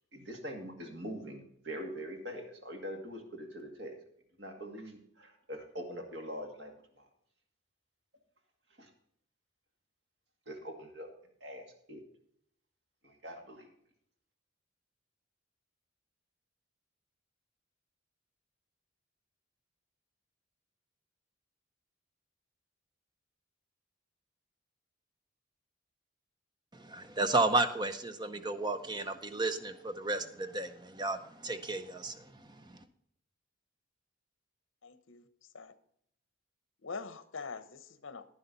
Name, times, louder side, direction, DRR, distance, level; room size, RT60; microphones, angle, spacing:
voice 1, 0.1-4.0 4.4-7.1 8.8-8.9 10.5-11.1 11.4-12.0 13.0-13.7, equal, 55° right, 3 dB, 2.2 m, -43 dB
voice 2, 26.7-32.8, right 2 dB, 20° right, 9 dB, 0.7 m, -33 dB
voice 3, 34.8-35.2 35.5-35.7 36.8-38.3, left 4 dB, 70° left, 12 dB, 0.9 m, -43 dB
11.0 x 10.0 x 4.0 m, 0.70 s
head